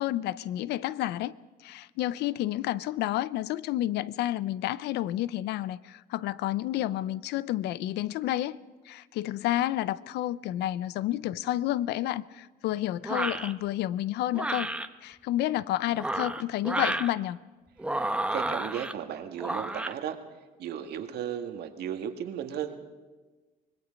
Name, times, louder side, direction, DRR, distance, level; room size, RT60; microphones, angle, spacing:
voice 1, 0.0-1.3 1.6-8.6 8.9-14.7 15.0-17.4, left 14 dB, 80° left, 0.6 m, -30 dB
sound 1, 13.0-13.5 14.3-14.9 15.9-17.1 17.8-18.9 19.4-19.9, right 1 dB, 5° right, 0.9 m, -31 dB
voice 2, 18.3-20.2 20.6-22.8, right 9 dB, 70° right, 1.8 m, -35 dB
25.0 x 20.5 x 5.2 m
cardioid pair, 110°, 17 cm